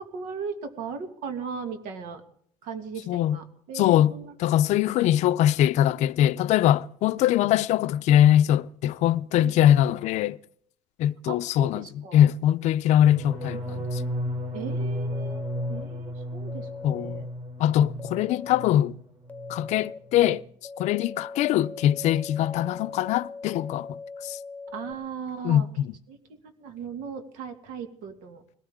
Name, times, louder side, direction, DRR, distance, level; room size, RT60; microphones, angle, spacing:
voice 1, 0.0-2.2 2.6-4.3 9.4-9.6 11.3-12.2 14.5-17.2 24.7-25.7 26.1-28.4, right 6 dB, 85° right, 2.4 m, -37 dB
voice 2, 3.1-3.4 3.7-10.4 11.0-14.0 16.8-17.2 17.6-18.9 19.5-20.4 20.8-24.4 25.4-25.7, left 11 dB, 65° left, 0.6 m, -22 dB
sound 1, 13.0-18.9 19.2-19.7 20.0-20.4, equal, 40° right, 4.0 m, -34 dB
sound 2, 15.1-15.8 16.5-17.2 18.0-18.7 19.3-20.0 20.6-24.9, left 4 dB, 10° left, 0.9 m, -40 dB
21.0 x 18.0 x 3.7 m
cardioid pair, 150°, 13 cm